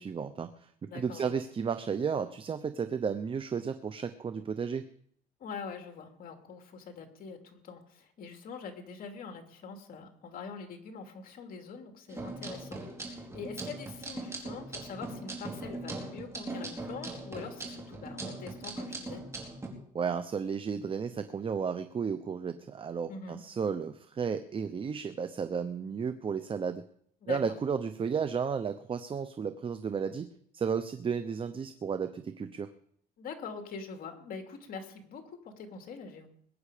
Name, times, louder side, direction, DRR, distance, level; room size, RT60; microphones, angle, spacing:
voice 1, 0.0-4.9 19.9-26.8 27.3-30.3 30.5-32.7, right 6 dB, 30° right, 10 dB, 0.9 m, -33 dB
voice 2, 0.9-1.4 5.4-19.2 23.1-23.4 27.2-27.4 33.2-36.3, left 5 dB, 60° left, 4 dB, 2.8 m, -44 dB
sound 1, 12.1-19.7, right 2 dB, 15° right, 4.3 m, -40 dB
21.5 x 9.6 x 5.1 m, 0.64 s
cardioid pair, 110°, 17 cm